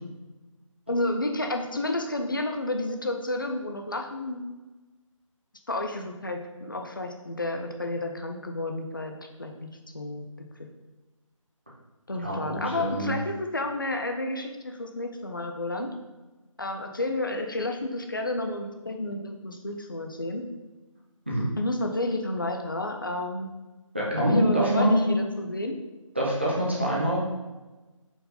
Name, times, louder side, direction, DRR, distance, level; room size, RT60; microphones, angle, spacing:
voice 1, 0.9-4.4 5.7-9.1 9.4-9.7 9.9-10.3 10.6-10.7 12.1-15.9 16.6-20.4 21.6-23.5 24.2-25.8, left 2 dB, 40° left, 4 dB, 0.4 m, -31 dB
voice 2, 12.2-13.1 21.3-21.5 23.9-25.1 26.2-27.2, equal, 20° right, -5 dB, 0.5 m, -25 dB
4.5 x 3.9 x 2.7 m, 1.2 s
figure-of-eight pair, 175°, 17 cm